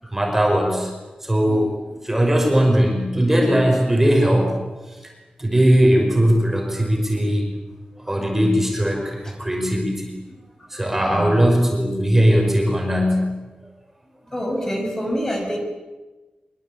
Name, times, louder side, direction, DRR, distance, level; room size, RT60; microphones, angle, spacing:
voice 1, 0.1-0.9 1.2-1.8 2.0-4.6 5.0-5.1 5.4-7.5 8.1-10.1 10.7-13.3, equal, 10° right, 0 dB, 5.5 m, -19 dB
voice 2, 10.7-11.7 14.3-15.6, equal, 20° left, 1 dB, 5.9 m, -28 dB
25.0 x 24.5 x 8.9 m, 1.2 s
wide cardioid pair, 180°, 3 cm